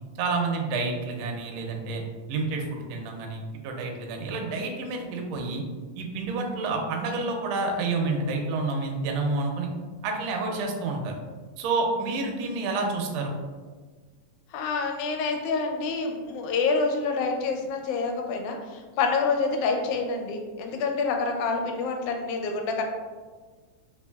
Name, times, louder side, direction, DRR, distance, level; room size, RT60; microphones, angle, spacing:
voice 1, 0.2-2.0 2.3-5.6 6.0-9.7 10.0-11.1 11.6-13.3, right 3 dB, 80° right, 2 dB, 1.4 m, -29 dB
voice 2, 14.5-22.8, left 4 dB, 85° left, 3 dB, 1.9 m, -27 dB
4.5 x 2.7 x 2.2 m, 1.4 s
omnidirectional pair, 3.4 m